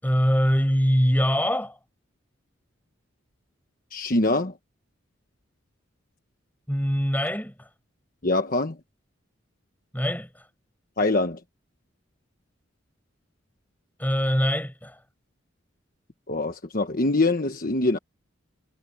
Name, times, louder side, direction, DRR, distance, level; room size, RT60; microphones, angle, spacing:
voice 1, 0.0-1.8 6.7-7.7 9.9-10.3 14.0-15.0, equal, 10° left, 6.4 m, -23 dB
voice 2, 3.9-4.5 8.2-8.8 11.0-11.4 16.3-18.0, left 2 dB, 45° left, 1.2 m, -24 dB
head